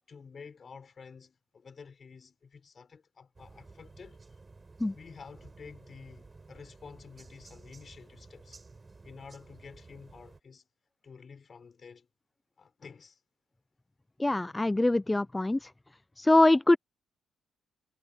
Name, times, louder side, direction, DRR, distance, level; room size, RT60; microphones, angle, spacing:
voice 1, 0.1-4.2 4.9-8.6 9.0-10.7 11.0-12.1 12.6-13.2, left 5 dB, 40° left, 6.7 m, -50 dB
sound 1, 3.3-10.4, right 3 dB, 25° right, 4.5 m, -53 dB
voice 2, 14.2-15.7 16.2-16.8, left 2 dB, 15° left, 0.3 m, -23 dB
cardioid pair, 90°, 0 cm